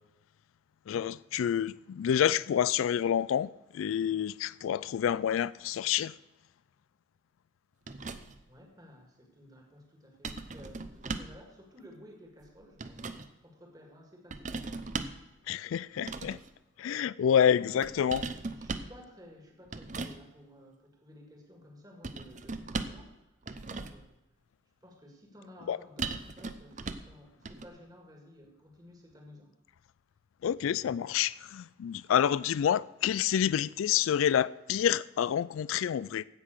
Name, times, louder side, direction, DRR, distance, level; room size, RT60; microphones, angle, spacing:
voice 1, 0.9-6.1 15.5-16.4 16.8-18.3 25.7-25.8 30.4-36.2, left 9 dB, 85° left, 0.3 m, -28 dB
sound 1, 7.9-8.5 10.2-11.4 12.4-13.3 14.3-15.3 16.0-16.5 17.8-19.0 19.7-20.2 22.0-23.1 23.4-24.1 26.0-27.1 27.5-27.7, right 3 dB, 35° right, 0.6 m, -38 dB
voice 2, 8.5-14.9 17.4-17.9 18.2-23.2 23.6-24.2 24.8-29.5, equal, 20° right, 1.9 m, -54 dB
15.5 x 5.9 x 6.4 m
head